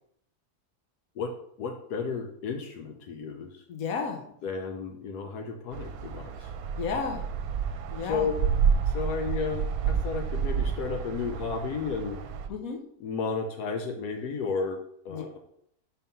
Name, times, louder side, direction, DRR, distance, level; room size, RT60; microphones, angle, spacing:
voice 1, 1.6-3.6 4.4-6.5 8.0-8.3 8.9-12.2 13.0-14.8 15.0-15.4, left 5 dB, 85° left, 3 dB, 1.3 m, -33 dB
voice 2, 3.7-4.2 6.8-7.2 7.9-8.3 12.5-12.8 15.1-15.4, left 5 dB, 65° left, 3 dB, 1.4 m, -32 dB
sound 1, 5.7-12.5, right 6 dB, 75° right, 1.1 m, -29 dB
5.4 x 4.3 x 5.4 m, 0.70 s
omnidirectional pair, 1.6 m